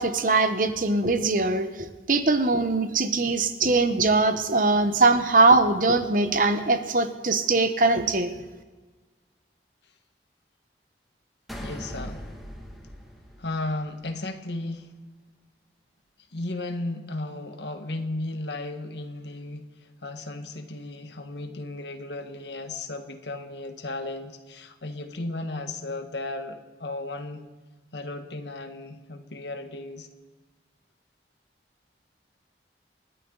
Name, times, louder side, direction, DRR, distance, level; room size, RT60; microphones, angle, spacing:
voice 1, 0.0-8.3, right 3 dB, 50° right, 9 dB, 1.0 m, -22 dB
sound 1, 11.5-14.1, equal, ahead, 2.2 m, -40 dB
voice 2, 11.6-12.2 13.4-14.9 16.3-19.7 20.0-27.5 27.9-30.1, left 2 dB, 80° left, 7 dB, 1.6 m, -35 dB
29.0 x 12.0 x 4.0 m, 1.3 s
head